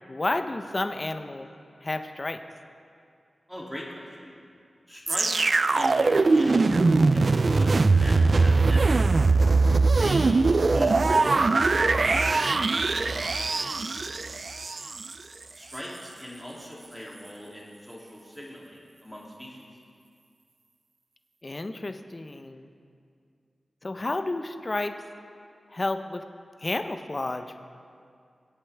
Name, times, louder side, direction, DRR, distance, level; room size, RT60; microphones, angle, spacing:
voice 1, 0.1-1.5 1.8-2.4 21.4-22.7 23.8-25.0 25.7-26.2 26.6-27.6, left 2 dB, 35° left, 8 dB, 0.7 m, -31 dB
voice 2, 3.5-4.3 4.9-6.8 7.1-8.8 10.0-14.0 15.6-19.7, equal, 5° left, -5 dB, 2.6 m, -39 dB
sound 1, 5.1-15.1 15.7-15.8, right 3 dB, 50° right, 0.3 m, -21 dB
24.0 x 8.3 x 3.4 m, 2.3 s
wide cardioid pair, 90°, 0 cm